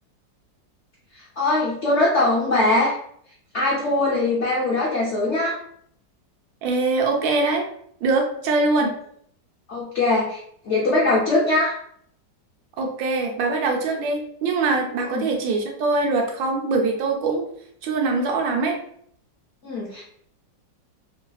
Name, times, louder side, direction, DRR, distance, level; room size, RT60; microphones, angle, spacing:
voice 1, 1.4-2.9 3.5-5.6 8.7-8.9 9.7-10.4 10.7-11.8 15.1-15.3 19.6-20.0, left 2 dB, 70° left, -6 dB, 0.6 m, -21 dB
voice 2, 6.6-7.7 8.0-8.9 12.8-17.4 17.8-18.8, right 3 dB, 90° right, 2 dB, 1.4 m, -23 dB
3.1 x 2.6 x 2.2 m, 0.65 s
omnidirectional pair, 2.0 m